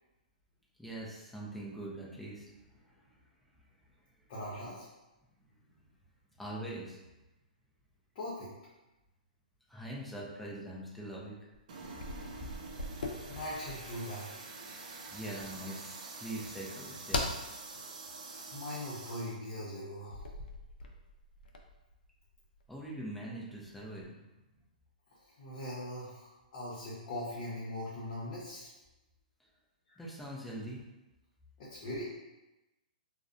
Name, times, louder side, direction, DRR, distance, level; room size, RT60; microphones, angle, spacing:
voice 1, 0.8-2.4 2.7-3.0 6.4-7.0 9.7-11.4 15.1-17.2 22.7-24.2 30.0-30.8, right 1 dB, 5° left, -5 dB, 0.5 m, -42 dB
voice 2, 4.3-4.9 8.1-8.5 13.3-14.3 18.2-20.3 25.4-28.7 29.9-30.0 31.6-32.0, left 1 dB, 50° left, -8 dB, 0.8 m, -41 dB
sound 1, 11.5-14.0 17.1-17.4 20.1-23.0 23.5-24.0, left 2 dB, 80° left, 0.4 m, -40 dB
sound 2, 11.7-19.4, right 3 dB, 55° right, 0.4 m, -47 dB
2.5 x 2.1 x 2.5 m, 1.0 s
hypercardioid pair, 145°, 5 cm